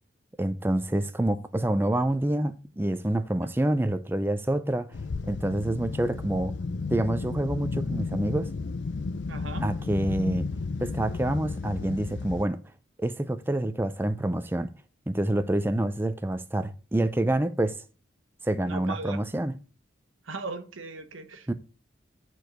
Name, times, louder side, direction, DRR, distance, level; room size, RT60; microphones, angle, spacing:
voice 1, 0.4-5.0 5.3-6.5 6.9-8.5 9.6-10.5 10.8-12.6 13.0-14.7 15.1-17.8 18.4-19.6 21.5-21.6, right 1 dB, 10° right, 0.4 m, -27 dB
sound 1, 4.9-12.4, left 4 dB, 65° left, 0.5 m, -33 dB
voice 2, 9.3-9.7 18.7-19.2 20.2-21.5, right 3 dB, 90° right, 1.3 m, -38 dB
10.0 x 4.7 x 6.5 m
head